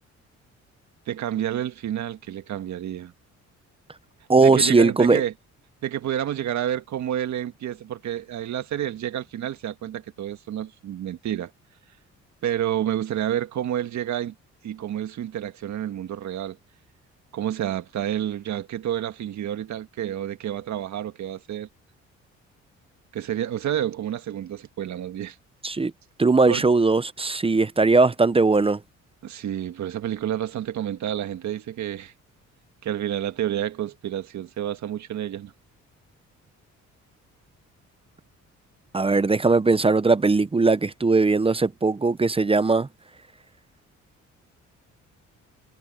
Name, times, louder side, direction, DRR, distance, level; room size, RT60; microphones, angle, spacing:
voice 1, 1.1-3.1 4.4-5.3 5.8-11.5 12.4-14.3 14.6-16.6 17.3-21.7 23.1-25.4 26.5-26.6 29.2-32.1 32.8-35.5, right 11 dB, 65° right, 1.7 m, -29 dB
voice 2, 4.3-5.2 25.6-25.9 26.2-28.8 38.9-42.9, right 3 dB, 20° right, 0.7 m, -19 dB
cardioid pair, 90°, 30 cm